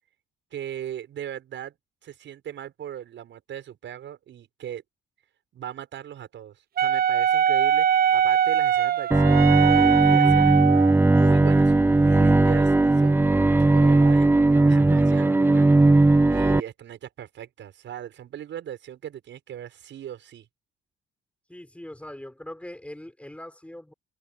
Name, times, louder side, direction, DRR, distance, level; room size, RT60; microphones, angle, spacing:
voice 1, 0.5-1.8 2.0-4.8 5.5-10.5 11.1-15.7 16.3-20.5, right 10 dB, 70° right, 7.2 m, -38 dB
Wind instrument woodwind instrument, 6.8-10.9, right 9 dB, 50° right, 0.6 m, -21 dB
Bowed string instrument, 9.1-16.6, right 2 dB, 10° right, 0.5 m, -18 dB
voice 2, 21.5-23.9, left 1 dB, 5° left, 6.6 m, -41 dB
open air
cardioid pair, 90°, 20 cm